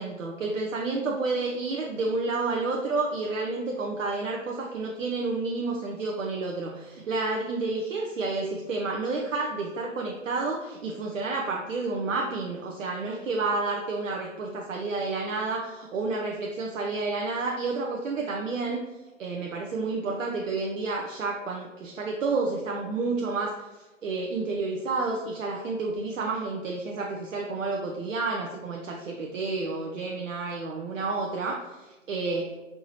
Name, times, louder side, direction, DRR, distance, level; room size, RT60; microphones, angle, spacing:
voice 1, 0.0-18.8 19.2-23.7 24.0-32.5, right 3 dB, 75° right, 0 dB, 0.6 m, -30 dB
4.5 x 2.7 x 2.9 m, 1.1 s
figure-of-eight pair, 130°, 39 cm